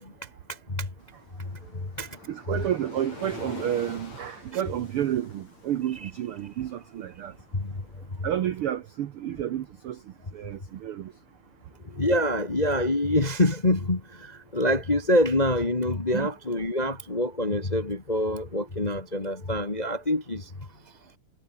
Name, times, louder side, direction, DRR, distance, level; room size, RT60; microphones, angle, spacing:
Waves surf, 1.0-8.1, left 3 dB, 55° left, 9.3 m, -46 dB
voice 1, 2.3-7.3 8.2-10.0 10.3-11.1 16.1-16.3, right 11 dB, 75° right, 1.2 m, -30 dB
voice 2, 12.0-20.4, left 1 dB, 25° left, 1.0 m, -25 dB
omnidirectional pair, 3.8 m